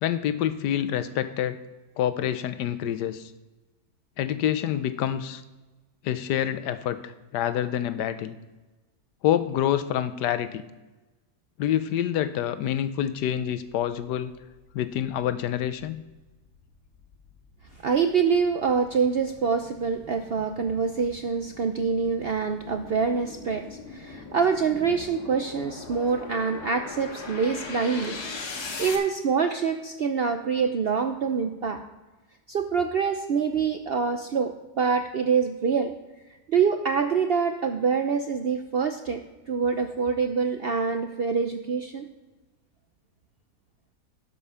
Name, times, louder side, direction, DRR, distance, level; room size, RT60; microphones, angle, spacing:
voice 1, 0.0-1.6 2.0-3.3 4.2-5.4 6.0-8.4 9.2-10.6 11.6-14.3 14.7-16.0, left 10 dB, 90° left, 13 dB, 1.3 m, -27 dB
sound 1, 15.8-29.0, left 4 dB, 70° left, 1.9 m, -41 dB
voice 2, 17.7-28.2 28.8-31.8 32.5-36.0 36.5-39.2 39.5-42.1, right 5 dB, 80° right, 6 dB, 0.5 m, -25 dB
12.0 x 5.6 x 5.6 m, 1.1 s
omnidirectional pair, 1.8 m